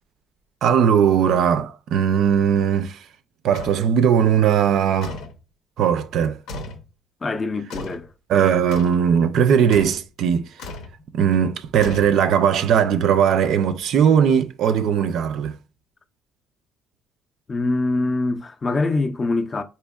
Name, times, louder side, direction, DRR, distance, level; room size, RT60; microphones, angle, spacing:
voice 1, 0.6-3.0 3.4-5.2 5.8-6.4 8.3-10.5 11.1-15.6, right 8 dB, 65° right, 0.4 m, -19 dB
sound 1, 3.5-3.9 5.0-5.4 6.5-6.9 7.7-8.1 8.7-9.0 9.7-10.1 10.6-11.0 11.8-12.4, left 2 dB, 80° left, 0.7 m, -35 dB
voice 2, 7.2-8.1 17.5-19.6, left 2 dB, 25° left, 0.4 m, -24 dB
4.3 x 2.8 x 2.2 m
cardioid pair, 125°, 0 cm